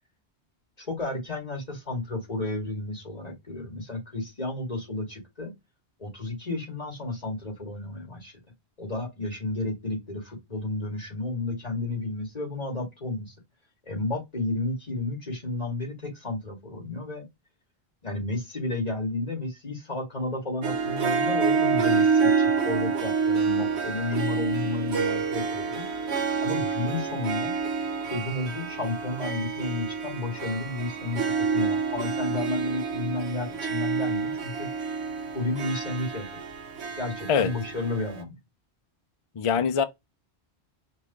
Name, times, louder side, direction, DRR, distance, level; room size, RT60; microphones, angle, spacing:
voice 1, 0.8-5.5 6.0-8.3 8.8-13.3 13.8-17.3 18.0-25.9 26.4-27.5 28.0-34.7 35.3-36.3 37.0-38.3, left 2 dB, 35° left, 2.8 m, -32 dB
Harp, 20.6-38.2, right 5 dB, 85° right, 1.1 m, -28 dB
voice 2, 39.4-39.8, left 7 dB, 55° left, 0.3 m, -23 dB
5.2 x 2.5 x 3.1 m
omnidirectional pair, 1.1 m